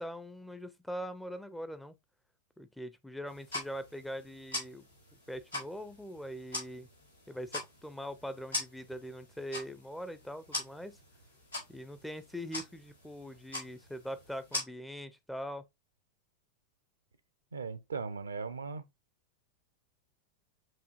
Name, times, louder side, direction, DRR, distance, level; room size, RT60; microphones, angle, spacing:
voice 1, 0.0-2.0 2.6-4.9 5.3-6.9 7.3-11.0 11.7-15.6, equal, 5° left, 0.4 m, -42 dB
sound 1, 3.3-14.6, left 2 dB, 90° left, 3.4 m, -43 dB
voice 2, 17.5-18.8, right 4 dB, 75° right, 0.4 m, -38 dB
7.4 x 2.7 x 2.3 m
figure-of-eight pair, 90°, 0 cm